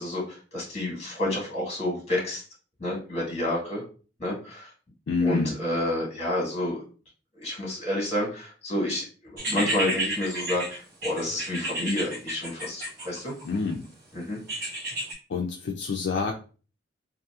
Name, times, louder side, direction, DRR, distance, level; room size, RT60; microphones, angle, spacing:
voice 1, 0.0-2.4 2.8-3.8 4.2-4.7 5.2-6.8 7.3-9.0 9.3-13.3 14.1-14.4, left 1 dB, 35° left, -3 dB, 1.4 m, -29 dB
voice 2, 5.1-5.6 13.4-13.8 15.3-16.3, left 4 dB, 65° left, 0 dB, 0.4 m, -27 dB
sound 1, 9.4-13.6 14.5-15.1, right 1 dB, 55° right, 1.2 m, -31 dB
2.8 x 2.6 x 2.3 m, 0.37 s
head